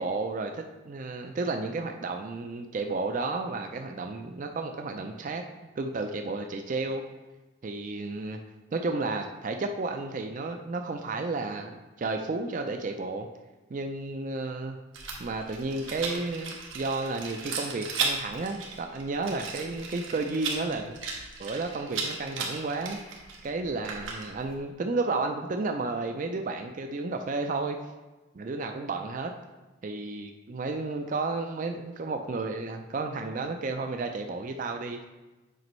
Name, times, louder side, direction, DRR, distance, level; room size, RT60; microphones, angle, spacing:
voice 1, 0.0-5.4 5.8-7.0 7.6-8.4 8.7-13.3 13.7-14.8 15.2-21.0 21.4-27.8 28.3-29.3 29.8-35.0, right 3 dB, 40° right, 5 dB, 0.4 m, -32 dB
Rattle, 14.9-24.5, right 4 dB, 70° right, 1.3 m, -36 dB
7.7 x 5.2 x 3.1 m, 1.2 s
head